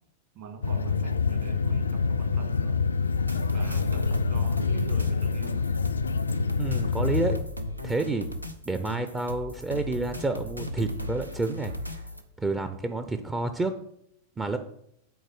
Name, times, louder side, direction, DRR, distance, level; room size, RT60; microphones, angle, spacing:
voice 1, 0.3-2.8 3.5-5.7, right 3 dB, 45° right, 2 dB, 2.0 m, -43 dB
sound 1, 0.6-7.4, left 5 dB, 75° left, 0.4 m, -26 dB
sound 2, 3.1-12.2, left 1 dB, 90° right, 0.7 m, -37 dB
voice 2, 6.6-7.4 7.8-8.3 8.7-11.7 12.4-13.7 14.4-14.6, right 3 dB, 15° right, 8 dB, 0.5 m, -29 dB
8.0 x 4.2 x 6.3 m, 0.73 s
figure-of-eight pair, 90°, 0 cm